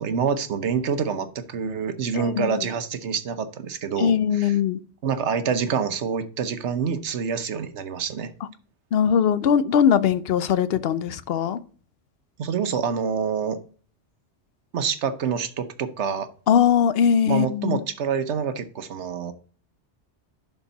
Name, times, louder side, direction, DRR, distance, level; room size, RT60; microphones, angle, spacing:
voice 1, 0.0-4.5 5.0-8.3 12.4-13.6 14.7-16.3 17.3-19.3, right 6 dB, 70° right, 1.2 m, -27 dB
voice 2, 2.1-2.5 4.0-4.8 8.9-11.6 16.5-17.8, left 8 dB, 65° left, 0.8 m, -20 dB
11.0 x 4.6 x 3.9 m
omnidirectional pair, 1.2 m